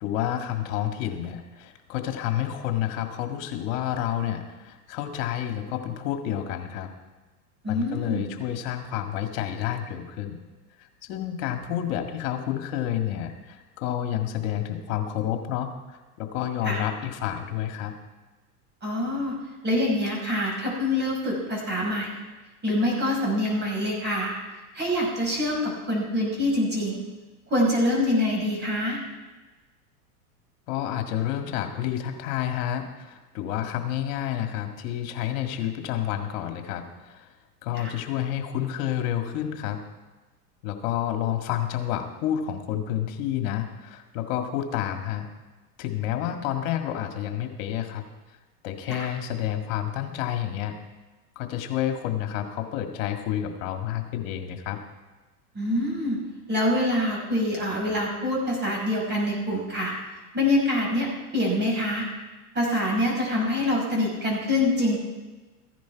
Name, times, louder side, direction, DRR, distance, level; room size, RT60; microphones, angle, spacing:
voice 1, 0.0-6.9 7.7-10.4 11.0-15.7 16.2-17.9 30.7-37.3 37.6-39.8 40.6-45.3 45.8-48.0 48.6-50.7 51.4-54.8, left 11 dB, 60° left, 5 dB, 1.9 m, -29 dB
voice 2, 7.6-8.2 16.6-16.8 18.8-19.4 19.6-22.1 22.6-24.3 24.8-27.0 27.5-29.0 37.7-37.9 48.9-49.1 55.6-56.2 56.5-59.9 60.3-61.1 61.3-62.1 62.6-65.0, left 1 dB, 25° right, -2 dB, 5.2 m, -25 dB
15.0 x 10.5 x 4.6 m, 1.2 s
hypercardioid pair, 115°, 45 cm